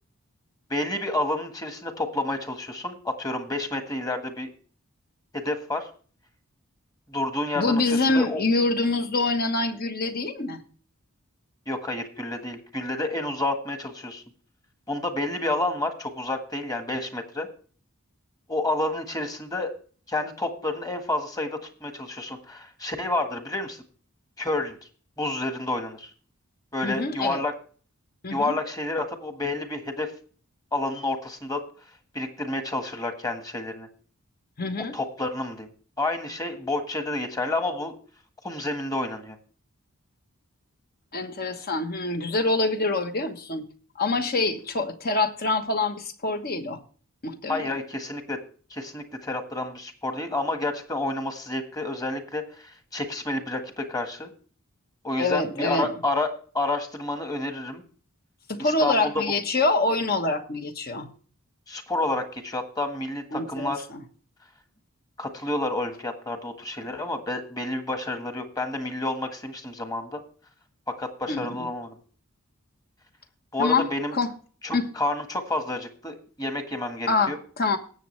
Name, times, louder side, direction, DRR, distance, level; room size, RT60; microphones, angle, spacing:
voice 1, 0.7-4.5 5.3-5.9 7.1-8.4 11.7-14.2 14.9-17.5 18.5-19.7 20.1-23.8 24.4-24.8 25.2-26.1 26.7-27.5 28.3-30.1 30.7-31.6 32.1-33.9 34.9-35.7 36.0-38.0 38.4-39.4 47.5-48.4 48.7-54.3 55.0-57.8 58.6-59.1 61.7-63.9 65.2-70.2 70.9-72.0 73.5-74.1 74.6-77.4, left 2 dB, 15° left, 6 dB, 1.5 m, -29 dB
voice 2, 7.6-10.6 26.8-27.4 28.2-28.5 34.6-35.0 41.1-43.7 44.0-46.8 47.2-47.7 55.2-55.9 58.5-61.1 63.3-64.0 71.3-71.7 73.6-73.8 74.1-74.3 74.7-74.8 77.1-77.8, left 3 dB, 45° left, 7 dB, 1.2 m, -25 dB
19.0 x 7.4 x 3.2 m, 0.42 s
head